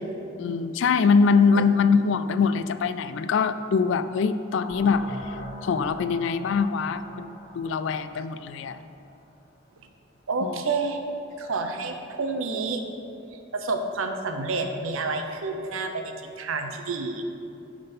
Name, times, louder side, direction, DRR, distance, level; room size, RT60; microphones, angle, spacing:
voice 1, 0.4-8.8 10.4-10.6, left 5 dB, 60° left, 11 dB, 0.3 m, -23 dB
sound 1, 4.6-9.3, left 1 dB, 45° left, 0.9 m, -42 dB
voice 2, 10.3-11.0 11.4-12.8 13.5-17.2, right 3 dB, 80° right, 5 dB, 0.7 m, -29 dB
9.6 x 3.8 x 5.4 m, 2.8 s
head